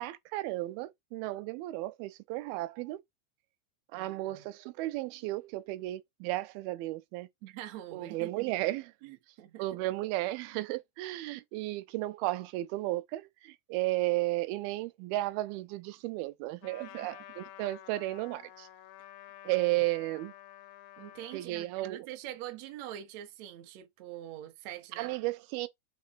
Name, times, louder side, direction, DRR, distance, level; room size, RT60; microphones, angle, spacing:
voice 1, 0.0-3.0 3.9-7.3 7.9-8.9 9.6-18.7 19.5-20.3 21.3-22.1 25.0-25.7, right 18 dB, 85° right, 2.4 m, -34 dB
voice 2, 3.9-4.5 7.4-8.4 9.0-9.7 16.8-17.1 19.8-19.9 21.0-25.1, right 12 dB, 65° right, 1.8 m, -44 dB
Trumpet, 16.6-21.5, left 13 dB, 75° left, 1.9 m, -51 dB
5.3 x 4.2 x 4.5 m
omnidirectional pair, 4.4 m